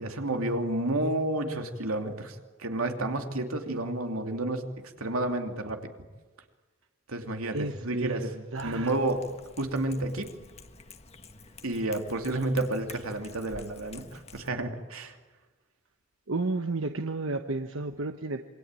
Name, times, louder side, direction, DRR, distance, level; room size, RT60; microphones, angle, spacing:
voice 1, 0.0-4.7 5.0-5.8 7.1-8.3 8.6-9.3 9.6-10.3 11.6-15.2, right 2 dB, 85° right, 4 dB, 2.7 m, -30 dB
voice 2, 7.5-9.0 16.3-18.5, right 3 dB, 70° right, 7 dB, 1.2 m, -32 dB
Cat, 8.6-14.5, left 3 dB, 30° left, 1.4 m, -49 dB
27.0 x 23.5 x 9.0 m, 1.3 s
head